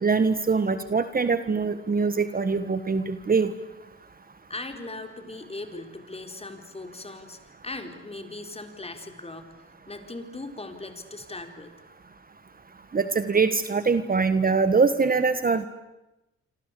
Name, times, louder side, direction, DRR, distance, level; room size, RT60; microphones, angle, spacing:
voice 1, 0.0-3.5 12.9-15.6, right 4 dB, 30° right, 11 dB, 1.5 m, -23 dB
voice 2, 4.5-9.5 9.9-11.7, left 2 dB, 20° left, 6 dB, 4.3 m, -39 dB
26.5 x 26.5 x 8.5 m, 0.94 s
cardioid pair, 90°, 30 cm